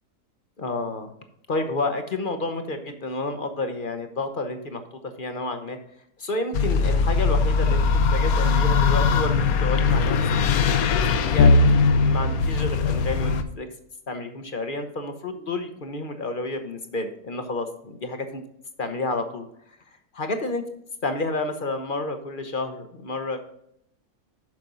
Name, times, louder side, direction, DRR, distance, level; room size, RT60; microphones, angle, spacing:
voice 1, 0.6-1.1 1.5-5.8 6.2-10.2 10.9-13.7 14.1-18.4 18.8-19.5 20.1-20.6 21.0-23.4, left 2 dB, 40° left, 7 dB, 0.8 m, -30 dB
sound 1, 6.5-13.4, left 4 dB, 70° left, 1.1 m, -20 dB
7.7 x 5.9 x 5.3 m, 0.73 s
omnidirectional pair, 1.7 m